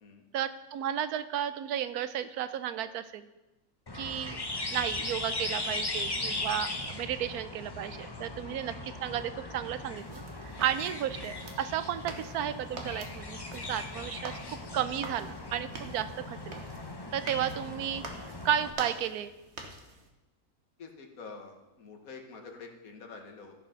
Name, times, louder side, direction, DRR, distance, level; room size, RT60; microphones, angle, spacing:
voice 1, 0.3-3.3 3.9-4.4 4.7-8.7 9.0-14.3 14.7-16.6 17.1-19.3, right 10 dB, 85° right, 12 dB, 1.1 m, -33 dB
sound 1, 3.9-18.7, left 2 dB, 20° left, 0.7 m, -38 dB
sound 2, 9.9-20.1, right 3 dB, 50° right, 1.4 m, -46 dB
voice 2, 20.8-23.5, left 4 dB, 65° left, 4 dB, 1.7 m, -47 dB
14.0 x 5.4 x 5.8 m, 1.0 s
omnidirectional pair, 1.6 m